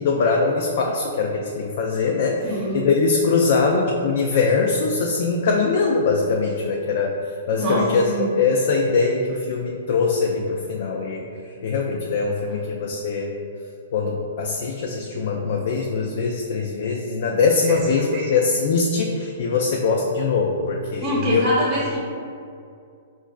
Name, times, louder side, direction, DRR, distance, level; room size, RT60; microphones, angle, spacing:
voice 1, 0.0-8.0 8.3-11.2 11.6-13.3 13.9-21.5, left 4 dB, 60° left, 0 dB, 0.3 m, -22 dB
voice 2, 2.4-2.8 7.6-8.3 17.6-17.7 18.1-18.2 21.0-22.0, right 1 dB, 30° right, -6 dB, 0.8 m, -24 dB
4.9 x 2.4 x 2.2 m, 2.4 s
hypercardioid pair, 130°, 0 cm